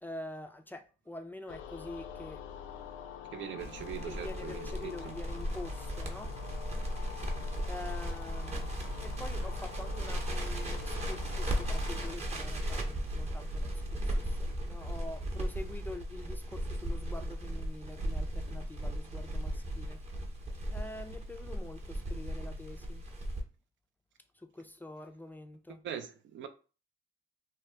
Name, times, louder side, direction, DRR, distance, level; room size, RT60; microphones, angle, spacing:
voice 1, 0.0-2.4 4.1-6.3 7.7-20.0 20.7-23.0 24.3-25.8, left 1 dB, 10° left, 0.4 m, -46 dB
sound 1, 1.5-12.2, left 8 dB, 80° left, 0.5 m, -46 dB
voice 2, 3.3-5.2 25.7-26.5, right 8 dB, 70° right, 0.4 m, -42 dB
Crackle, 3.6-23.4, equal, 35° right, 0.8 m, -36 dB
2.7 x 2.2 x 3.2 m
cardioid pair, 90°, 20 cm